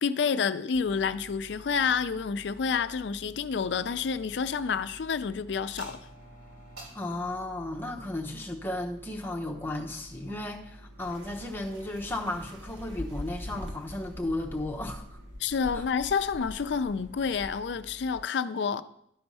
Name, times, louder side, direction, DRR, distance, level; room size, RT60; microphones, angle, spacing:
voice 1, 0.0-6.0 15.4-18.8, left 6 dB, 65° left, 0.4 m, -29 dB
sound 1, 0.7-18.2, equal, 55° right, 3.1 m, -50 dB
voice 2, 6.9-15.0 15.7-15.8, left 1 dB, 10° left, 0.9 m, -34 dB
sound 2, 11.0-17.5, left 1 dB, 90° right, 1.4 m, -43 dB
12.0 x 4.5 x 5.4 m
head